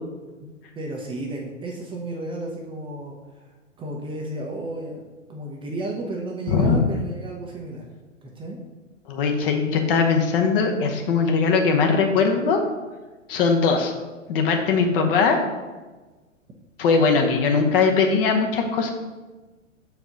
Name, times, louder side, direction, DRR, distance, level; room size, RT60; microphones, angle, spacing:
voice 1, 0.8-3.5 3.8-5.0 5.3-7.8 8.2-8.6 14.8-15.1, right 2 dB, 15° right, -1 dB, 0.7 m, -33 dB
voice 2, 6.5-6.8 9.1-12.6 13.3-13.9 14.3-15.4 16.8-18.9, left 5 dB, 45° left, 3 dB, 1.0 m, -20 dB
6.9 x 4.6 x 3.9 m, 1.2 s
figure-of-eight pair, 115°, 39 cm